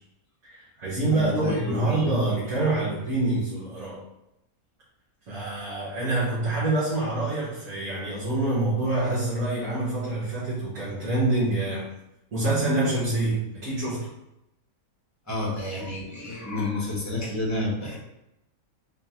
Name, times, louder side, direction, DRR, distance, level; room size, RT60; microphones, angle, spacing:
voice 1, 0.4-4.0 5.3-11.9 12.3-14.1, right 2 dB, 65° right, -10 dB, 1.6 m, -26 dB
voice 2, 1.1-2.1 15.3-18.0, left 2 dB, 15° left, -4 dB, 0.9 m, -30 dB
3.9 x 3.3 x 2.8 m, 0.85 s
omnidirectional pair, 1.6 m